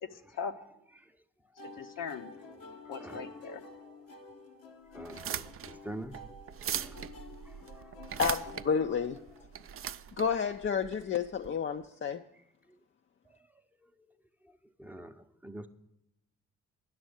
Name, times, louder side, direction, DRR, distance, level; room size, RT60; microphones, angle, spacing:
voice 1, 0.0-0.5 1.6-2.3 2.9-3.6 8.2-8.3, left 6 dB, 75° left, 7 dB, 0.9 m, -39 dB
sound 1, 1.6-9.5, left 2 dB, 90° left, 1.3 m, -50 dB
voice 2, 4.9-6.2 6.7-7.0 14.8-15.7, right 1 dB, 5° right, 7 dB, 0.7 m, -44 dB
sound 2, 5.0-11.5, right 9 dB, 40° right, 0.5 m, -40 dB
voice 3, 8.7-9.2 10.2-12.2, left 6 dB, 35° left, 6 dB, 0.5 m, -30 dB
10.5 x 6.3 x 7.9 m, 0.82 s
supercardioid pair, 65°, 33 cm